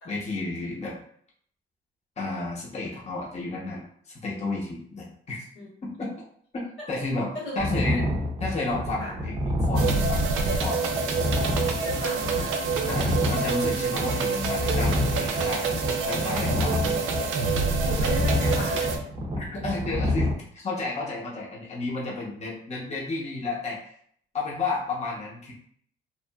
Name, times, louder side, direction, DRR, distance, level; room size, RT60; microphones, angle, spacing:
voice 1, 0.0-0.9 2.2-5.4 5.8-6.1 6.5-6.6 6.9-7.3 7.5-8.1 8.4-10.9 12.9-15.7 16.1-16.8 19.4-24.0 24.3-25.5, left 3 dB, 35° left, -4 dB, 0.8 m, -32 dB
sound 1, 7.6-20.3, left 1 dB, 30° right, 0.5 m, -28 dB
sound 2, 9.7-19.0, right 4 dB, 80° right, 0.4 m, -27 dB
voice 2, 11.8-12.6 17.8-18.9, equal, 90° left, -6 dB, 1.3 m, -35 dB
2.8 x 2.3 x 2.2 m, 0.62 s
cardioid pair, 90°, 20 cm